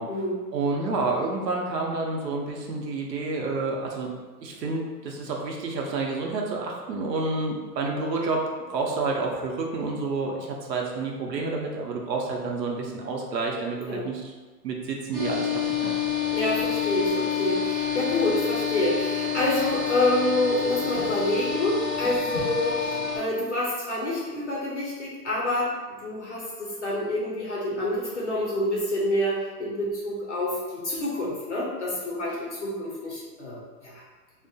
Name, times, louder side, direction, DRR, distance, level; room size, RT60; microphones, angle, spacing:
voice 1, 0.0-0.4 13.9-14.0 16.3-25.7 26.0-34.0, left 1 dB, 50° left, -5 dB, 0.5 m, -27 dB
voice 2, 0.5-4.1 4.4-14.2 14.6-16.0, right 3 dB, 85° right, 0 dB, 0.7 m, -29 dB
sound 1, 15.1-23.2, left 7 dB, 35° right, 0.6 m, -28 dB
2.3 x 2.0 x 2.6 m, 1.3 s
hypercardioid pair, 170°, 49 cm